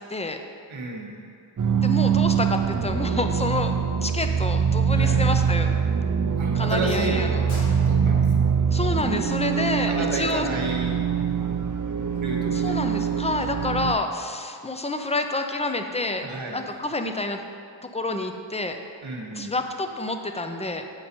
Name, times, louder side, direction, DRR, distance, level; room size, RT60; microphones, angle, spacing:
voice 1, 0.7-1.2 4.9-5.2 6.4-7.5 7.9-8.5 9.8-11.0 12.2-12.8 16.2-16.6 19.0-19.6, right 2 dB, 90° right, -1 dB, 1.2 m, -31 dB
sound 1, 1.6-13.9, right 7 dB, 45° right, 0.6 m, -23 dB
voice 2, 1.8-3.7 4.0-5.8 6.5-7.4 8.7-10.5 12.5-17.4 17.8-18.8 19.3-20.8, left 2 dB, 15° left, 6 dB, 0.6 m, -28 dB
sound 2, 7.5-12.4, left 1 dB, 85° left, 1.3 m, -47 dB
7.8 x 5.5 x 4.4 m, 2.4 s
cardioid pair, 45°, 46 cm